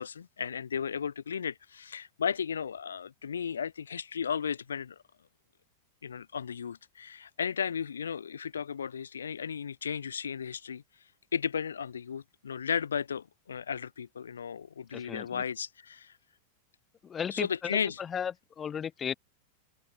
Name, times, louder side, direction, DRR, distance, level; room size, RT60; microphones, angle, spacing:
voice 1, 0.0-5.0 6.0-10.8 11.3-16.1 17.3-18.0, left 7 dB, 70° left, 0.5 m, -34 dB
voice 2, 14.9-15.4 17.0-19.1, left 8 dB, 20° left, 1.3 m, -35 dB
figure-of-eight pair, 90°, 0 cm